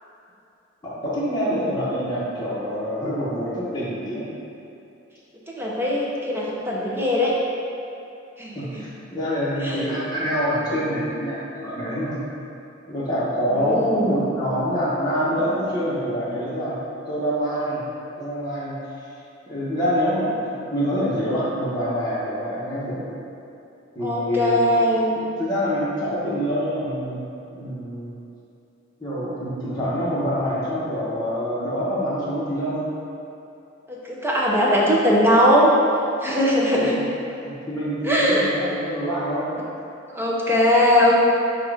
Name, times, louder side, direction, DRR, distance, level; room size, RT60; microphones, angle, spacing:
voice 1, 0.8-4.2 8.5-12.2 12.9-16.8 17.1-17.8 18.2-18.8 19.5-20.4 20.7-23.0 23.9-24.6 25.4-27.2 27.5-28.1 29.0-32.9 37.4-39.6, equal, 20° left, -9 dB, 1.3 m, -26 dB
voice 2, 5.6-7.3 8.4-8.8 9.6-9.9 13.5-14.2 24.0-25.1 33.9-35.7 36.2-37.0 38.0-38.4 40.1-41.2, equal, 10° right, -4 dB, 0.7 m, -20 dB
7.5 x 2.5 x 4.9 m, 2.7 s
head